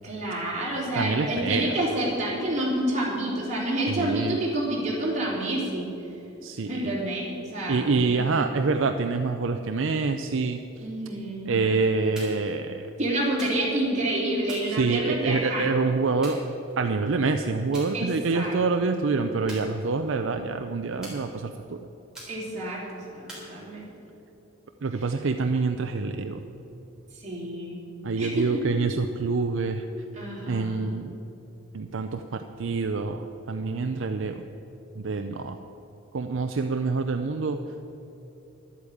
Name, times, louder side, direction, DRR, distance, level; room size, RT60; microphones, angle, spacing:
voice 1, 0.0-5.9 6.6-8.3 10.8-11.5 13.0-15.7 17.9-18.5 22.3-23.9 27.1-27.8 28.2-28.6 30.1-30.8, right 1 dB, 35° right, -5 dB, 3.4 m, -28 dB
voice 2, 1.0-1.7 3.9-4.4 6.4-7.0 7.7-10.6 11.5-12.8 14.7-16.4 16.8-21.8 24.8-26.5 28.0-29.8 30.5-31.2 31.7-34.4 35.0-35.6 36.1-37.6, right 4 dB, 65° right, 6 dB, 0.5 m, -26 dB
sound 1, 12.2-12.6 13.4-13.9 14.5-15.4 16.2-17.0 17.7-17.9 18.3-18.7 19.5-20.3 21.0-21.6 22.1-22.7 23.3-24.1, right 1 dB, 5° right, 3.6 m, -44 dB
11.5 x 8.5 x 8.6 m, 3.0 s
head